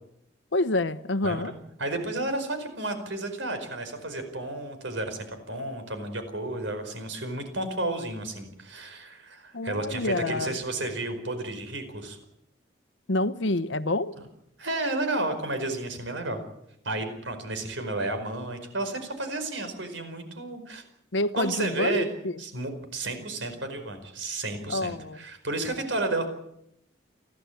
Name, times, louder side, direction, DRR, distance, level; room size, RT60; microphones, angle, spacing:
voice 1, 0.5-1.5 9.5-10.6 13.1-14.1 21.1-22.3 24.7-25.2, left 2 dB, 75° left, 1.1 m, -27 dB
voice 2, 1.2-12.2 14.6-16.4 16.8-20.8 21.3-22.1 22.4-26.3, right 2 dB, 75° right, 4.9 m, -32 dB
30.0 x 12.0 x 8.6 m
head